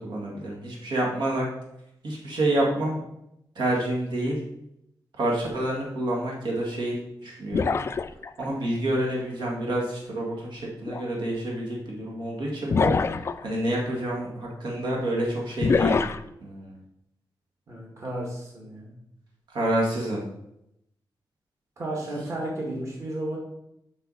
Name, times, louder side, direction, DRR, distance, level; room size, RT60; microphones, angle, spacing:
voice 1, 0.0-1.5 2.0-3.0 3.6-4.4 5.2-7.0 7.2-7.8 8.4-13.0 13.4-16.0 16.4-16.8 19.5-20.2, right 1 dB, 75° right, -2 dB, 2.0 m, -28 dB
sound 1, 7.5-8.4 10.9-11.0 12.7-13.4 15.6-16.2, left 5 dB, 35° left, 0.3 m, -24 dB
voice 2, 17.7-18.9 21.8-23.4, right 1 dB, 40° right, -2 dB, 1.9 m, -33 dB
8.1 x 5.9 x 4.1 m, 0.82 s
wide cardioid pair, 165°, 8 cm